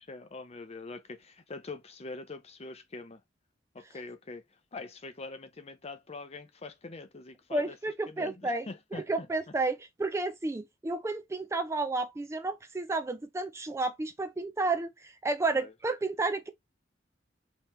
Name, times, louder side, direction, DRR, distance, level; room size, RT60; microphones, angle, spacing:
voice 1, 0.0-3.2 3.7-7.8 8.1-9.3 15.5-15.7, left 3 dB, 35° left, 0.7 m, -44 dB
voice 2, 7.5-8.7 8.9-16.5, right 3 dB, 15° right, 0.3 m, -31 dB
3.3 x 2.9 x 3.1 m
head